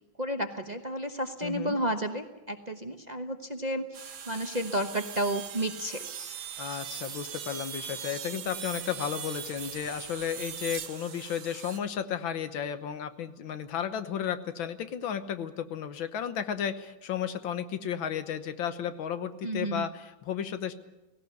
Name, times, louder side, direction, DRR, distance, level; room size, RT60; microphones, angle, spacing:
voice 1, 0.2-6.0 19.4-19.9, right 1 dB, 30° right, 6 dB, 0.9 m, -32 dB
voice 2, 1.4-1.8 6.6-20.7, left 9 dB, 80° left, 10 dB, 1.9 m, -33 dB
sound 1, 3.9-11.8, right 8 dB, 90° right, 2.1 m, -40 dB
17.5 x 17.5 x 9.4 m, 1.0 s
omnidirectional pair, 2.1 m